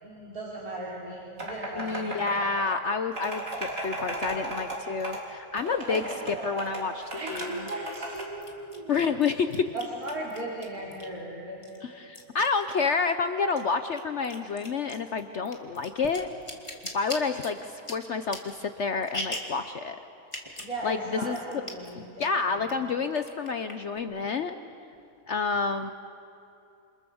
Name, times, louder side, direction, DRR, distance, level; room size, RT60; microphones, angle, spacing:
voice 1, 0.0-2.2 3.7-5.0 5.6-6.8 7.1-9.1 9.7-11.7 20.6-22.7, right 1 dB, 75° right, -5 dB, 4.0 m, -38 dB
sound 1, 1.4-2.8 3.1-4.8 5.0-5.2 5.6-8.2, right 1 dB, 60° right, 4.4 m, -36 dB
voice 2, 1.8-6.0 6.4-7.0 7.3-7.7 8.9-9.7 11.8-16.3 16.9-20.0 20.8-21.6 22.0-24.6 25.3-25.9, left 5 dB, 55° left, 9 dB, 1.0 m, -29 dB
sound 2, 5.6-5.7 7.3-11.3 11.6-13.2 13.4-19.6 20.2-20.8 21.0-21.1 21.3-21.9 22.2-22.7 23.1-24.0, left 1 dB, 20° left, 2.4 m, -40 dB
28.0 x 27.5 x 7.1 m, 2.8 s
omnidirectional pair, 1.6 m